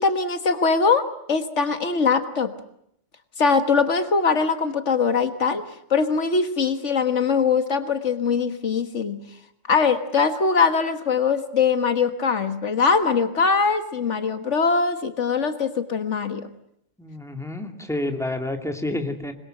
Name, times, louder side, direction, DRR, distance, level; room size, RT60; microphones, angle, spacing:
voice 1, 0.0-2.5 3.4-5.6 5.9-9.2 9.7-16.5, left 5 dB, 75° left, 9 dB, 1.9 m, -22 dB
voice 2, 17.0-19.3, left 2 dB, ahead, 4 dB, 2.5 m, -29 dB
26.5 x 21.5 x 7.8 m, 0.72 s
omnidirectional pair, 1.2 m